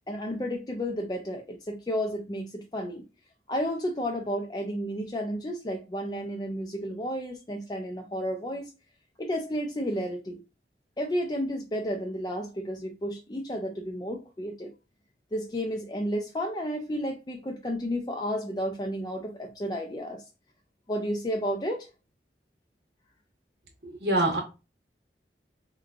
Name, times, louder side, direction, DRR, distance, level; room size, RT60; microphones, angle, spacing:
voice 1, 0.1-3.0 3.5-8.7 9.2-10.4 11.0-14.7 15.3-20.2 20.9-21.9, equal, 25° left, 0.4 m, -32 dB
voice 2, 23.8-24.4, right 1 dB, 65° right, 1.2 m, -25 dB
4.8 x 2.3 x 2.3 m
head